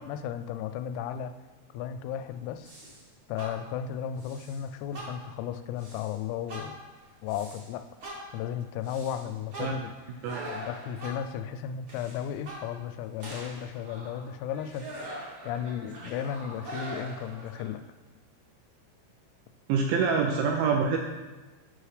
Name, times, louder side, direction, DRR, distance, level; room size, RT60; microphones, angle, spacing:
voice 1, 0.0-1.3 1.7-2.7 3.3-6.8 7.2-7.8 8.3-9.9 10.5-15.0 15.5-17.8, left 9 dB, 90° left, 9 dB, 3.2 m, -35 dB
sound 1, 2.6-3.0 3.4-3.8 4.2-4.6 4.9-5.4 5.8-6.1 6.5-7.7 8.0-11.4 11.9-12.9 13.2-17.6, right 1 dB, 65° right, 1.2 m, -43 dB
voice 2, 19.7-21.0, right 5 dB, 80° right, 1 dB, 2.7 m, -26 dB
8.3 x 5.7 x 4.9 m, 1.2 s
omnidirectional pair, 5.9 m